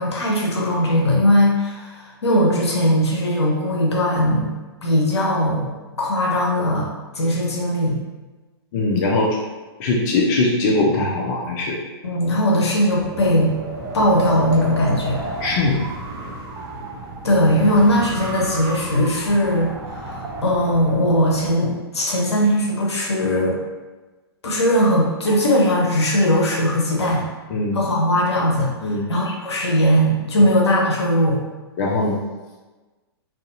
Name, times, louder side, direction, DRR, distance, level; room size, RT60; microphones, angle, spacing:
voice 1, 0.0-4.5 4.8-5.7 6.0-6.9 7.1-8.0 12.0-13.6 13.9-15.2 17.2-23.6 24.4-27.2 27.7-31.4, equal, 80° left, -2 dB, 0.8 m, -19 dB
voice 2, 8.7-9.4 9.8-11.8 15.4-15.8 27.5-27.8 28.8-29.1 31.8-32.2, left 2 dB, 40° left, -3 dB, 0.5 m, -20 dB
Wind, 12.9-21.6, right 2 dB, 25° right, 0.6 m, -32 dB
2.6 x 2.4 x 2.5 m, 1.2 s
figure-of-eight pair, 115°, 14 cm